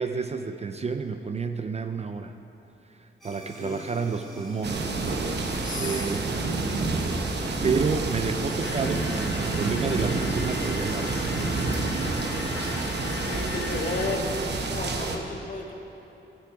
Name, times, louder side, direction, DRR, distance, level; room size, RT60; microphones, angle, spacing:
voice 1, 0.0-2.3 3.0-5.0 5.4-6.8 7.6-11.3, right 5 dB, 30° right, 7 dB, 0.4 m, -30 dB
sound 1, 3.2-8.5, right 1 dB, ahead, 2.0 m, -43 dB
sound 2, 4.6-15.2, right 3 dB, 55° right, 0.9 m, -28 dB
voice 2, 5.6-6.1 13.0-14.3 14.7-15.7, left 3 dB, 40° left, 1 dB, 1.2 m, -33 dB
sound 3, 8.6-14.2, left 5 dB, 85° left, 0.8 m, -38 dB
15.5 x 5.9 x 4.8 m, 3.0 s
wide cardioid pair, 125°, 20 cm